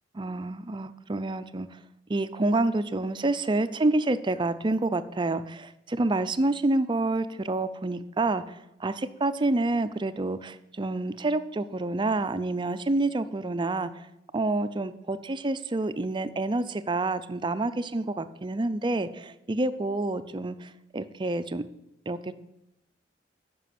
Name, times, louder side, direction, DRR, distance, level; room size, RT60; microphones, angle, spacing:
voice 1, 0.1-1.8 2.1-14.1 14.3-21.6 22.1-22.3, right 2 dB, 25° right, 12 dB, 0.5 m, -28 dB
9.2 x 6.2 x 7.6 m, 0.85 s
head